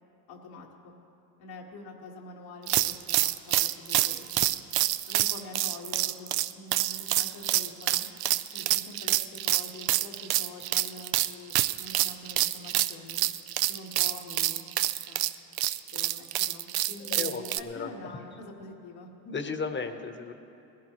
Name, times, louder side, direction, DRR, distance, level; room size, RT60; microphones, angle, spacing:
voice 1, 0.3-0.7 1.4-4.5 5.1-8.1 8.5-11.5 11.8-13.3 13.7-15.2 15.9-19.1, left 3 dB, 80° left, -3 dB, 1.9 m, -46 dB
sound 1, 2.7-17.6, right 15 dB, 50° right, 0.5 m, -27 dB
voice 2, 17.0-18.2 19.2-20.3, left 4 dB, 25° left, 7 dB, 1.1 m, -35 dB
19.5 x 15.0 x 3.1 m, 2.7 s
supercardioid pair, 95°, 48 cm